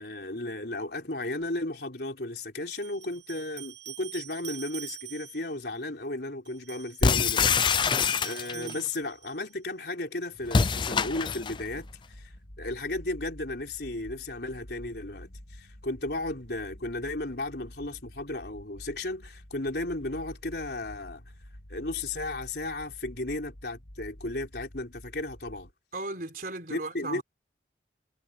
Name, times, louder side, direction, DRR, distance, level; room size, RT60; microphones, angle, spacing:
voice 1, 0.0-8.0 8.2-12.3 12.6-21.2 21.7-25.7 26.7-27.2, left 2 dB, 60° left, 4.0 m, -34 dB
sound 1, 1.4-1.5 2.7-5.5 6.5-9.5, right 13 dB, 85° right, 6.1 m, -44 dB
sound 2, 7.0-8.7 10.5-11.6, left 5 dB, 25° left, 0.4 m, -25 dB
voice 2, 8.5-8.8 25.9-27.2, right 2 dB, 50° right, 4.2 m, -37 dB
sound 3, 10.4-25.7, equal, 75° left, 2.4 m, -48 dB
head